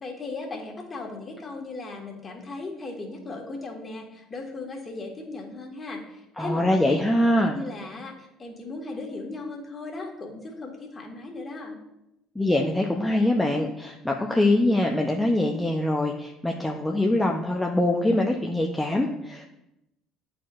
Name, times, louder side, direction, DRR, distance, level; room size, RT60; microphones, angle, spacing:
voice 1, 0.0-7.0 7.4-11.8, left 3 dB, 30° left, 1 dB, 1.7 m, -37 dB
voice 2, 6.4-7.6 12.4-19.5, left 1 dB, 10° left, 0 dB, 0.7 m, -23 dB
10.0 x 4.3 x 2.5 m, 0.88 s
figure-of-eight pair, 55°, 0 cm